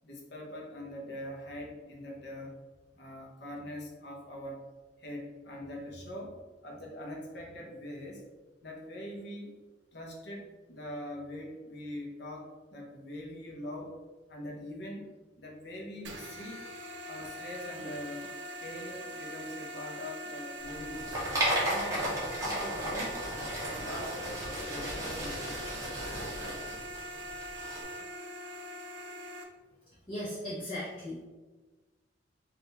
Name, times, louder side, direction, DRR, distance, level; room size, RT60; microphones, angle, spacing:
voice 1, 0.0-2.5 2.9-4.6 5.0-6.4 6.6-8.2 8.6-9.5 9.9-13.9 14.3-15.1 15.4-16.6 17.1-18.3 18.6-21.0 21.6-22.1 22.4-23.3 23.6-25.5 26.4-26.6, left 1 dB, 60° left, -1 dB, 1.0 m, -42 dB
sound 1, 16.0-29.4, right 1 dB, 80° right, 0.6 m, -42 dB
Popcorn in bowl, 20.6-27.8, right 1 dB, 15° right, 1.3 m, -34 dB
voice 2, 30.1-31.2, left 1 dB, 30° left, -9 dB, 1.0 m, -37 dB
4.1 x 2.7 x 4.0 m, 1.2 s
head